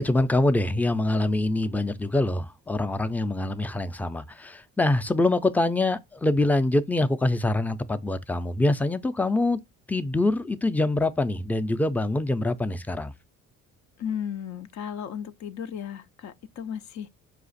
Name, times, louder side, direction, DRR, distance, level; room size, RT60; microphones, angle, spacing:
voice 1, 0.0-9.6 9.9-13.1, left 2 dB, 5° left, 0.4 m, -24 dB
voice 2, 14.0-17.1, left 8 dB, 65° left, 0.5 m, -35 dB
5.0 x 2.4 x 3.9 m
cardioid pair, 90°, 30 cm